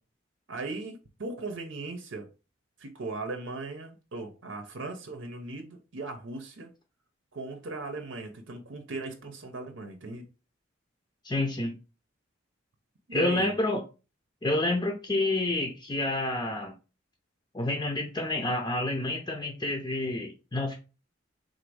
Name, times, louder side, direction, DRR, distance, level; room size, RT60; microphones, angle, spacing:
voice 1, 0.5-2.3 2.8-6.7 7.3-10.3 13.1-13.5, right 3 dB, 75° right, 0.7 m, -38 dB
voice 2, 11.2-11.8 13.1-13.8 14.4-16.7 17.5-20.7, left 2 dB, 20° left, 0.6 m, -28 dB
3.9 x 2.6 x 4.7 m
head